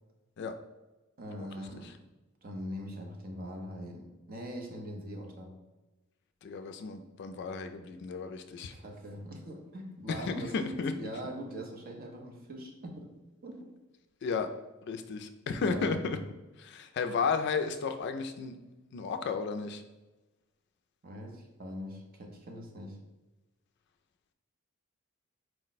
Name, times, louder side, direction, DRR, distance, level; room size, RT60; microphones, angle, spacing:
voice 1, 1.2-2.0 2.4-5.5 8.7-13.1 13.4-13.7 15.5-16.2 21.0-23.0, equal, 45° right, 2 dB, 0.7 m, -42 dB
voice 2, 6.4-8.7 10.1-10.9 14.2-14.5 14.8-16.2 16.6-18.6 18.9-19.8, left 5 dB, 55° left, 8 dB, 0.3 m, -33 dB
4.5 x 2.1 x 4.0 m, 1.1 s
head